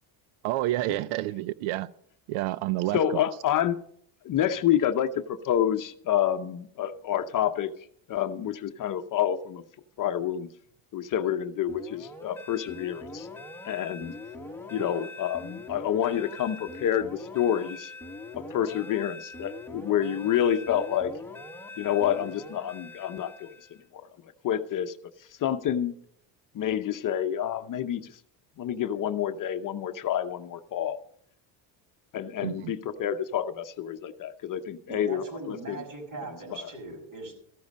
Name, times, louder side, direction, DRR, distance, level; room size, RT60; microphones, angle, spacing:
voice 1, 0.4-1.9 2.3-3.2 32.4-32.7, right 16 dB, 90° right, 0.6 m, -29 dB
voice 2, 2.9-3.8 4.2-7.7 8.1-9.6 10.0-10.5 10.9-13.3 13.6-14.1 14.7-17.9 18.4-21.2 21.8-23.5 23.9-24.0 24.4-24.9 25.4-25.9 26.5-28.1 28.6-31.0 32.1-35.8, left 10 dB, 45° left, 0.8 m, -28 dB
sound 1, 11.7-23.8, left 2 dB, 5° left, 1.3 m, -42 dB
voice 3, 34.9-37.4, right 3 dB, 45° right, 6.2 m, -40 dB
14.0 x 12.5 x 5.3 m
cardioid pair, 125°, 46 cm